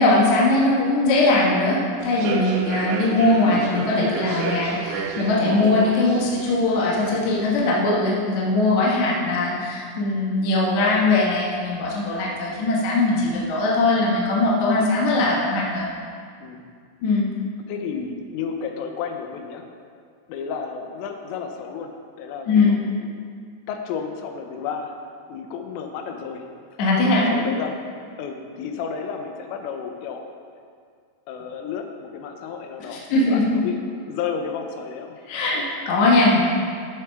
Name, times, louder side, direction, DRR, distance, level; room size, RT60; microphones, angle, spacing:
voice 1, 0.0-15.9 17.0-17.3 22.5-22.8 26.8-27.3 32.9-33.4 35.3-36.4, left 2 dB, 65° left, -5 dB, 1.8 m, -20 dB
Human voice / Subway metro underground, 2.0-7.5, right 5 dB, 85° right, 3.1 m, -31 dB
voice 2, 2.9-3.2 9.3-9.6 16.4-16.7 17.7-19.6 20.3-21.9 22.2-23.2 23.7-24.9 25.3-26.4 27.1-27.8 28.2-30.3 31.3-35.5, left 6 dB, 90° left, 4 dB, 3.4 m, -32 dB
13.5 x 6.4 x 3.6 m, 2.2 s
omnidirectional pair, 5.6 m